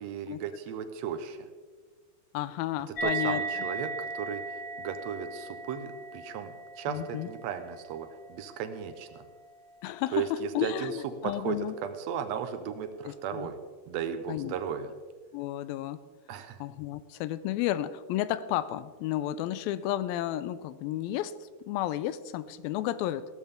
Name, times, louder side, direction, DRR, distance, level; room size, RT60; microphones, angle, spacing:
voice 1, 0.0-1.5 3.0-9.3 10.1-11.0 11.2-13.6 13.9-14.9 16.3-16.6, right 7 dB, 80° right, 9 dB, 1.5 m, -35 dB
voice 2, 2.3-3.4 6.9-7.3 9.8-11.7 13.1-13.5 14.3-14.5 15.3-16.0 16.6-23.3, left 13 dB, 85° left, 14 dB, 2.4 m, -32 dB
sound 1, 3.0-9.9, right 4 dB, 40° left, 1.8 m, -38 dB
17.0 x 13.5 x 3.5 m, 1.4 s
omnidirectional pair, 4.2 m